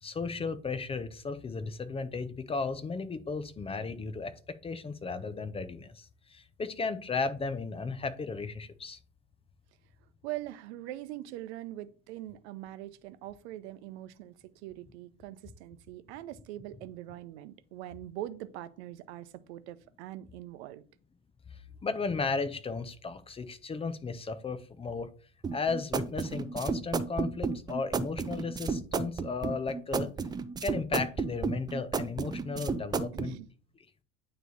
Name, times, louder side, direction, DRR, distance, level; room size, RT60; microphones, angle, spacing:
voice 1, 0.0-4.3 4.6-9.0 21.8-25.1 25.5-30.1 30.6-33.4, left 4 dB, 15° left, 0.8 m, -35 dB
voice 2, 10.2-20.9 33.1-33.5, right 14 dB, 55° right, 0.8 m, -42 dB
sound 1, 25.4-33.3, right 5 dB, 10° right, 0.4 m, -32 dB
9.1 x 3.3 x 4.1 m
hypercardioid pair, 90°, 38 cm